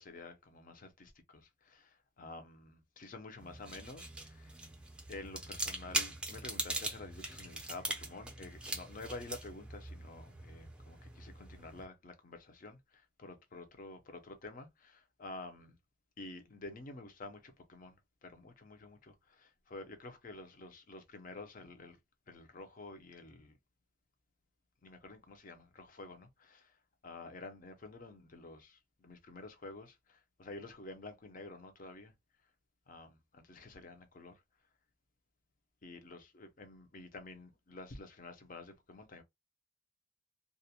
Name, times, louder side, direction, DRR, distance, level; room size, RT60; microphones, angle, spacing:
voice 1, 0.0-4.5 5.1-12.8 13.2-15.7 16.2-17.9 18.2-22.0 22.3-23.5 24.8-26.7 27.0-32.1 32.9-34.3 35.8-39.2, left 2 dB, 40° left, 0.5 m, -50 dB
sound 1, 3.4-11.8, right 2 dB, 5° right, 0.4 m, -41 dB
2.4 x 2.1 x 2.7 m
head